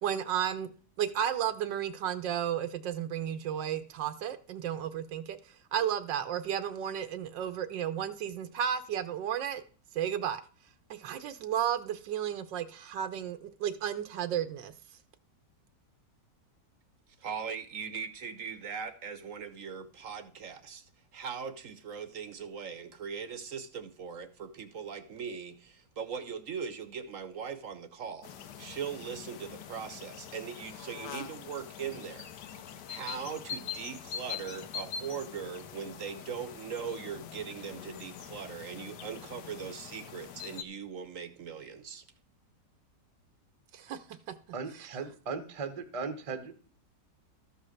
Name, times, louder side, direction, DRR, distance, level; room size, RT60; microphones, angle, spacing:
voice 1, 0.0-0.7 1.0-5.4 5.7-9.6 9.9-10.4 10.9-14.7 43.7-44.0 44.3-44.4, right 9 dB, 90° right, 1.5 m, -33 dB
voice 2, 17.2-42.0, right 6 dB, 55° right, 1.0 m, -40 dB
sound 1, 28.2-40.6, left 8 dB, 75° left, 1.4 m, -44 dB
voice 3, 44.5-46.8, right 5 dB, 25° right, 0.7 m, -38 dB
13.0 x 5.5 x 6.4 m
omnidirectional pair, 1.9 m